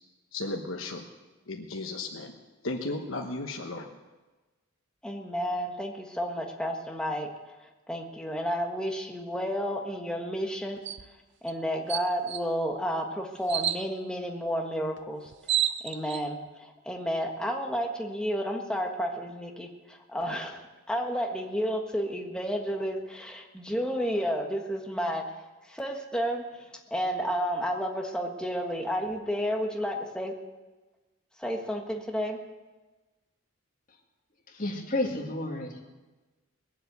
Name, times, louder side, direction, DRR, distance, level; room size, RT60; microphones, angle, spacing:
voice 1, 0.3-1.1 1.5-2.3 2.6-3.9, left 2 dB, 75° left, 2 dB, 1.2 m, -35 dB
voice 2, 5.0-7.3 7.9-10.8 11.4-15.3 15.8-25.3 25.6-30.3 31.4-32.4, equal, 5° left, 2 dB, 1.4 m, -31 dB
sound 1, 10.9-11.1 11.5-11.6 11.9-12.4 13.5-13.8 15.0-15.1 15.3-16.2, right 11 dB, 55° right, 0.6 m, -29 dB
voice 3, 34.5-35.8, left 2 dB, 40° left, 0 dB, 2.2 m, -31 dB
20.5 x 7.6 x 8.2 m, 1.2 s
head